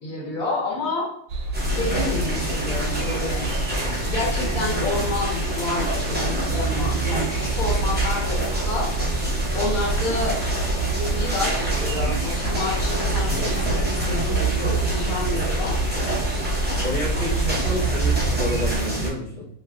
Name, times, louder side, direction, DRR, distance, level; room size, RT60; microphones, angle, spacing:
voice 1, 0.0-1.1 1.7-3.5 4.1-8.9 9.5-10.4 10.9-15.8, left 3 dB, 80° left, -3 dB, 1.5 m, -29 dB
sound 1, 1.3-18.8, right 2 dB, 80° right, 1.0 m, -28 dB
sound 2, 1.5-19.1, right 2 dB, 15° right, 0.3 m, -26 dB
voice 2, 16.8-19.5, left 1 dB, 45° left, -5 dB, 1.0 m, -29 dB
3.0 x 2.7 x 2.3 m, 0.70 s
omnidirectional pair, 1.4 m